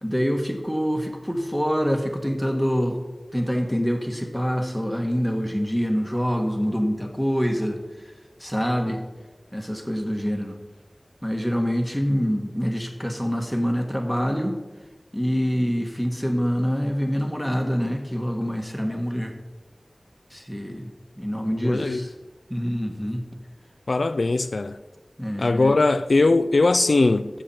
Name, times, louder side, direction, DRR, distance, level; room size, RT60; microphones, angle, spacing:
voice 1, 0.0-3.0 3.3-8.1 8.4-9.0 9.5-10.6 11.2-14.6 15.1-19.3 20.3-20.9 21.2-22.1 22.5-23.2 25.2-25.7, equal, ahead, 1.5 m, -25 dB
voice 2, 21.6-22.0 23.9-24.8 25.4-27.4, left 3 dB, 80° left, 0.3 m, -20 dB
13.0 x 7.7 x 4.3 m
wide cardioid pair, 60°, 0 cm